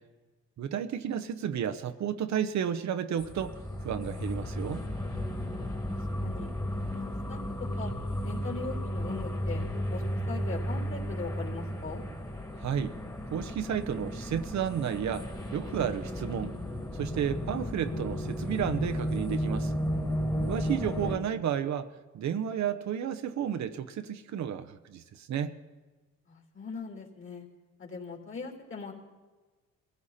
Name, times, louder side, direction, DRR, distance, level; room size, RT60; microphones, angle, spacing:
voice 1, 0.6-3.6 3.8-4.8 12.6-12.9 13.3-16.5 16.9-19.7 20.5-25.6, right 9 dB, 65° right, 9 dB, 1.0 m, -32 dB
sound 1, 3.2-21.2, equal, 10° left, 2.2 m, -34 dB
voice 2, 5.5-6.5 6.9-7.9 8.2-9.6 9.9-12.0 26.3-27.5 27.8-28.9, left 4 dB, 40° left, 1 dB, 3.6 m, -40 dB
22.0 x 15.0 x 4.3 m, 1.2 s
cardioid pair, 90°, 30 cm